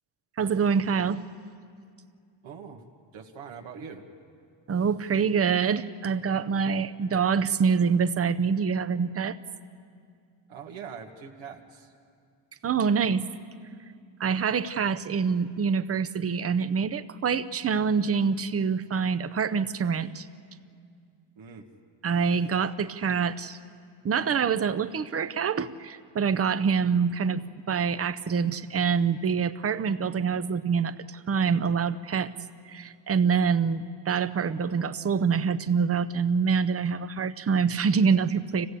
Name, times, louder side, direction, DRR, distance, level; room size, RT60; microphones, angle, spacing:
voice 1, 0.3-1.2 4.7-9.4 12.6-13.3 13.8-13.9 14.2-20.3 22.0-23.6 24.0-32.3 32.6-38.7, right 6 dB, 30° right, 13 dB, 0.7 m, -26 dB
voice 2, 2.4-4.1 10.5-11.9 21.4-21.7, right 6 dB, 80° right, 1 dB, 1.8 m, -43 dB
25.5 x 16.5 x 8.4 m, 2.3 s
cardioid pair, 115°, 46 cm